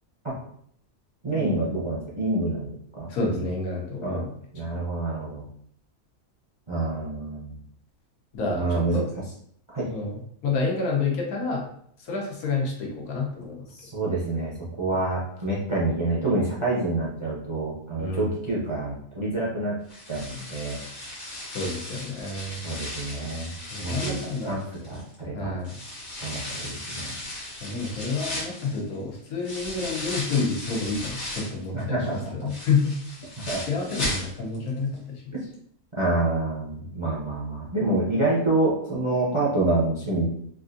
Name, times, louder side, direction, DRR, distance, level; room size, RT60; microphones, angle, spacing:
voice 1, 1.2-2.7 3.0-3.4 4.0-4.2 4.5-5.4 6.7-7.5 8.5-9.0 9.7-9.9 13.8-14.5 14.8-19.8 20.1-20.8 22.6-23.5 23.8-24.2 24.5-24.6 24.9-25.5 26.2-27.1 31.7-32.3 33.5-33.6 36.0-40.2, right 2 dB, 35° right, -5 dB, 0.5 m, -27 dB
voice 2, 3.1-4.3 4.7-4.8 8.3-9.0 9.9-11.7 12.0-13.7 18.0-18.3 21.5-22.6 23.7-24.6 25.3-25.8 27.6-33.0 33.6-35.2, left 4 dB, 85° left, -1 dB, 1.3 m, -29 dB
sound 1, 19.9-25.2 25.6-31.6 32.0-34.7 35.0-35.1 35.5-35.6, left 1 dB, 55° left, 1.2 m, -36 dB
3.5 x 2.5 x 2.5 m, 0.66 s
omnidirectional pair, 1.5 m